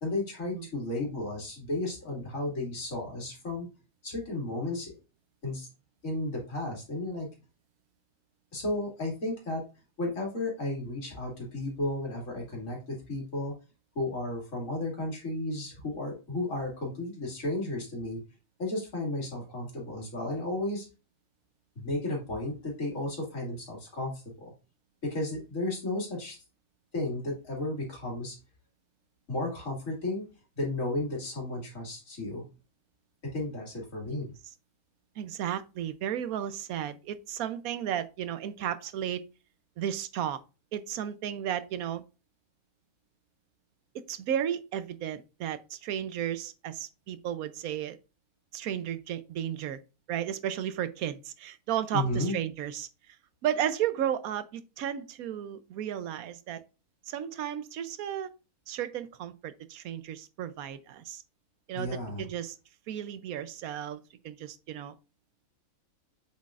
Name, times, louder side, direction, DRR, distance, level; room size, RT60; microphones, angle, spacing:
voice 1, 0.0-3.7 4.0-5.0 5.4-5.7 6.0-7.3 8.5-9.6 10.0-13.5 13.9-18.2 18.6-20.9 21.8-24.5 25.0-26.4 26.9-28.4 29.3-30.2 30.6-32.4 33.3-34.3 51.9-52.4 61.7-62.3, left 2 dB, 65° left, 2.7 m, -33 dB
voice 2, 35.2-39.2 39.8-40.4 40.7-42.0 43.9-48.0 48.5-49.8 50.1-53.2 53.4-56.6 57.1-58.3 58.7-61.2 61.7-62.6 62.9-64.9, right 10 dB, 85° right, 1.1 m, -34 dB
8.0 x 6.2 x 2.4 m
omnidirectional pair, 1.5 m